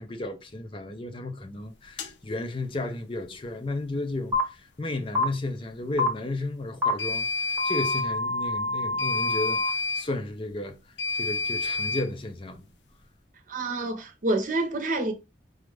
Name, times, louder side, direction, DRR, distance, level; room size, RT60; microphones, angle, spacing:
voice 1, 0.0-10.8 11.2-12.7, left 2 dB, 30° left, 0.5 m, -33 dB
sound 1, 2.0-2.1 7.0-8.1 9.0-10.1 11.0-12.1, left 3 dB, 80° left, 0.5 m, -29 dB
sound 2, 4.3-4.4 5.1-5.2 6.0-6.1 6.8-6.9 7.6-9.7, left 3 dB, 10° right, 1.0 m, -27 dB
voice 2, 13.5-15.1, right 2 dB, 45° right, 0.8 m, -27 dB
5.0 x 2.3 x 3.1 m
head